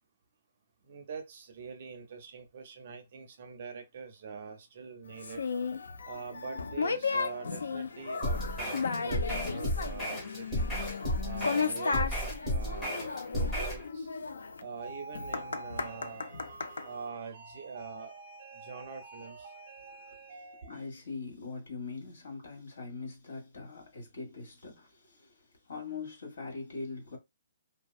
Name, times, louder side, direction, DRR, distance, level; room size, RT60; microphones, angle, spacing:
voice 1, 0.8-5.4 6.0-10.7 11.2-14.1 14.6-20.9, right 5 dB, 35° right, 0.4 m, -44 dB
sound 1, 5.2-16.9, left 5 dB, 90° left, 0.4 m, -35 dB
sound 2, 8.2-13.8, equal, 10° left, 0.7 m, -33 dB
voice 2, 20.7-27.2, left 4 dB, 70° left, 1.6 m, -42 dB
2.7 x 2.2 x 2.3 m
hypercardioid pair, 175°, 0 cm